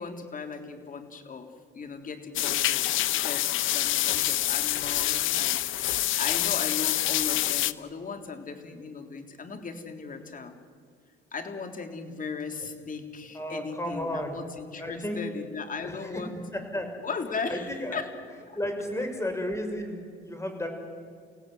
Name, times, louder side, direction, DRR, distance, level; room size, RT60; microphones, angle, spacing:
voice 1, 0.0-3.4 3.7-10.6 11.3-16.4 17.0-18.1, left 5 dB, 45° left, 6 dB, 3.6 m, -37 dB
sound 1, 2.3-7.7, left 14 dB, 80° left, 0.9 m, -26 dB
voice 2, 13.3-14.4 14.8-15.2 15.8-16.2 16.5-16.9 17.5-18.0 18.5-20.7, left 1 dB, 15° left, 5 dB, 6.3 m, -33 dB
30.0 x 17.0 x 9.6 m, 2.1 s
cardioid pair, 90°, 20 cm